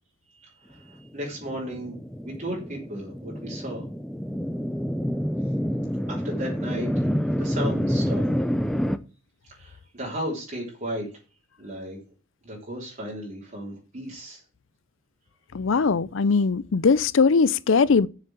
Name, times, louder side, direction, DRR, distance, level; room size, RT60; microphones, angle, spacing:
voice 1, 0.7-2.0 2.2-3.8 6.1-7.1 7.4-8.2 9.5-11.1 11.6-12.0 12.4-14.4, right 1 dB, 40° right, 3.5 m, -34 dB
sound 1, 1.2-9.0, equal, ahead, 0.6 m, -28 dB
voice 2, 15.5-18.1, left 5 dB, 65° left, 0.5 m, -20 dB
7.2 x 6.7 x 7.4 m
head